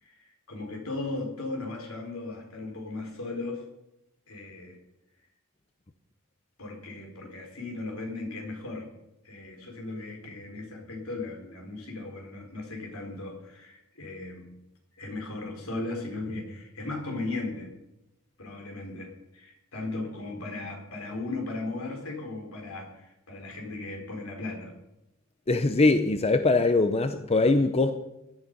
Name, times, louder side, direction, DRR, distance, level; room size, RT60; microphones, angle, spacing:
voice 1, 0.0-3.6 4.3-4.8 6.6-8.9 9.2-14.5 14.9-17.7 18.4-24.7, left 2 dB, 70° left, 2 dB, 4.2 m, -37 dB
voice 2, 25.5-27.9, left 3 dB, 30° left, 9 dB, 0.7 m, -22 dB
16.5 x 11.0 x 5.3 m, 0.91 s
head